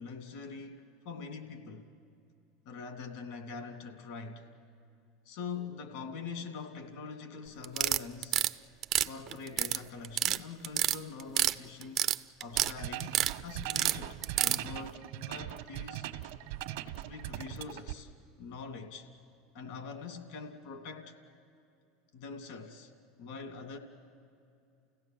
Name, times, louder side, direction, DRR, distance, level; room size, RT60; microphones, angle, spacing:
voice 1, 0.0-1.9 2.7-4.5 5.3-8.4 9.0-12.0 12.4-16.0 17.0-18.1 18.4-19.1 19.5-21.2 22.1-22.9 23.2-23.8, left 5 dB, 70° left, 2.5 m, -43 dB
sound 1, 7.6-8.5 8.8-9.8 10.0-10.4 10.6-11.5 11.8-12.7 13.0-13.3 13.7-14.6, right 11 dB, 45° right, 0.6 m, -28 dB
sound 2, 12.5-17.9, right 13 dB, 75° right, 1.2 m, -40 dB
29.5 x 16.5 x 7.4 m
hypercardioid pair, 100°, 0 cm